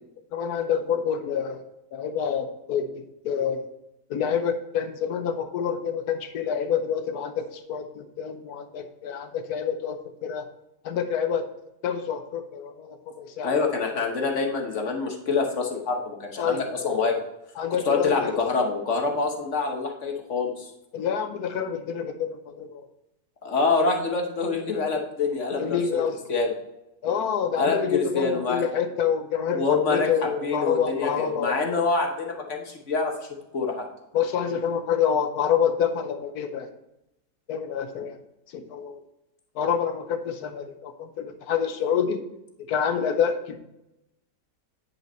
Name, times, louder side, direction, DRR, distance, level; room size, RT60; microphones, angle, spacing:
voice 1, 0.3-1.6 1.9-3.6 4.1-10.4 10.8-11.4 11.8-13.5 16.4-16.7 17.6-18.3 20.9-22.8 25.6-26.2 27.0-31.6 34.1-36.7 37.5-38.2 38.5-39.0 39.6-42.2 42.7-43.6, left 7 dB, 70° left, 8 dB, 1.2 m, -27 dB
voice 2, 13.4-17.2 17.8-20.7 23.4-26.0 26.3-26.5 27.6-28.6 29.5-30.1 30.4-33.1 33.5-33.9, left 4 dB, 50° left, 2 dB, 1.4 m, -26 dB
9.3 x 5.5 x 4.3 m, 0.88 s
omnidirectional pair, 1.8 m